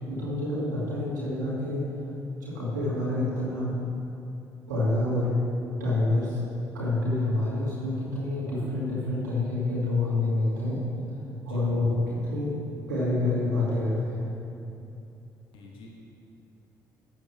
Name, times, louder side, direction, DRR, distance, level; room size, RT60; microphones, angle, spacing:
voice 1, 0.1-2.1 2.4-3.8 4.7-5.4 5.8-6.4 6.7-10.8 11.1-12.6 12.9-14.2, left 2 dB, 90° right, -9 dB, 2.1 m, -27 dB
voice 2, 15.5-16.0, left 2 dB, 65° left, -1 dB, 1.2 m, -47 dB
12.5 x 7.8 x 3.5 m, 2.7 s
figure-of-eight pair, 45°, 9 cm